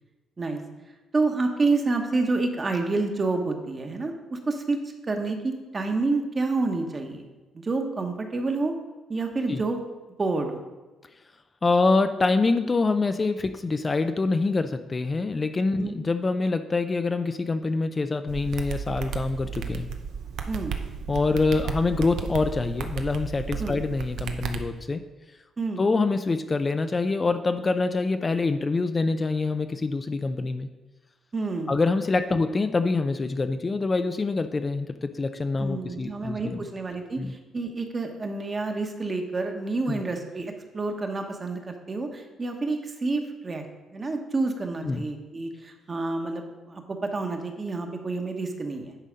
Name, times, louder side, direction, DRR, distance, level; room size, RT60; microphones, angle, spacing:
voice 1, 1.1-7.3 7.5-8.7 9.1-9.8 10.2-10.6 15.8-16.0 20.5-20.7 23.6-23.8 25.6-25.8 31.3-31.7 35.6-43.6 43.9-48.9, right 3 dB, 30° right, 4 dB, 1.1 m, -28 dB
voice 2, 11.6-19.9 21.1-25.0 25.8-30.7 31.7-36.6 37.2-37.3 39.9-40.0 44.8-45.0, left 3 dB, 30° left, 9 dB, 0.4 m, -25 dB
sound 1, 18.3-24.6, right 6 dB, 75° right, 0.6 m, -34 dB
9.9 x 4.1 x 5.1 m, 1.2 s
cardioid pair, 90°, 0 cm